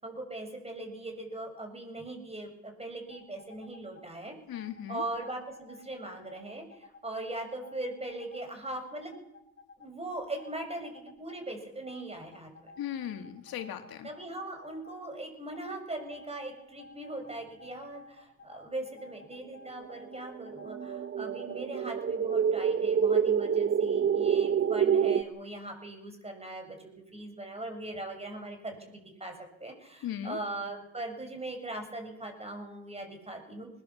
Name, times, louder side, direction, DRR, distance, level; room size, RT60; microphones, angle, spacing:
voice 1, 0.0-4.4 4.9-9.1 9.8-12.7 14.0-29.3 29.6-33.7, right 2 dB, 15° right, 5 dB, 6.5 m, -40 dB
sound 1, 3.1-4.0 4.5-7.0 7.5-9.9 10.2-11.4 11.9-15.0 15.5-21.8 22.3-22.4, left 3 dB, 30° left, 2.3 m, -53 dB
voice 2, 4.5-5.0 12.8-14.1 30.0-30.4, left 10 dB, 75° left, 7 dB, 2.4 m, -37 dB
sound 2, 20.1-25.2, right 7 dB, 35° right, 1.1 m, -27 dB
21.5 x 20.0 x 7.3 m, 0.84 s
cardioid pair, 105°, 36 cm